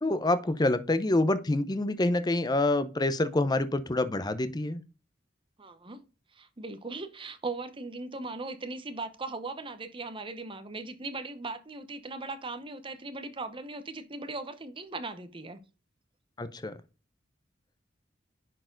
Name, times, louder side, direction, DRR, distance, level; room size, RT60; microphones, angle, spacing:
voice 1, 0.0-4.8 16.4-16.7, left 2 dB, 20° left, 0.6 m, -27 dB
voice 2, 5.6-6.0 6.3-15.6, right 3 dB, 30° right, 0.9 m, -39 dB
10.5 x 4.5 x 3.8 m
head